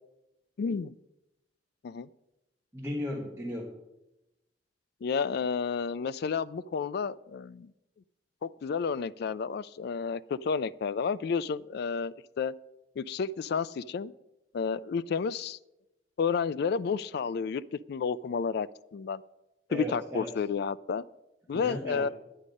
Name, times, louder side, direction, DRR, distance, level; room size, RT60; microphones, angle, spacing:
voice 1, 0.6-1.0 1.8-2.1 5.0-7.7 8.4-12.5 13.0-14.1 14.5-15.6 16.2-17.6 17.9-18.7 18.9-19.2 19.7-21.0 21.5-22.1, left 5 dB, 65° left, 17 dB, 0.3 m, -31 dB
voice 2, 2.7-3.8 19.7-20.3 21.5-22.1, equal, 15° right, -2 dB, 1.3 m, -36 dB
10.0 x 9.8 x 5.2 m, 0.92 s
head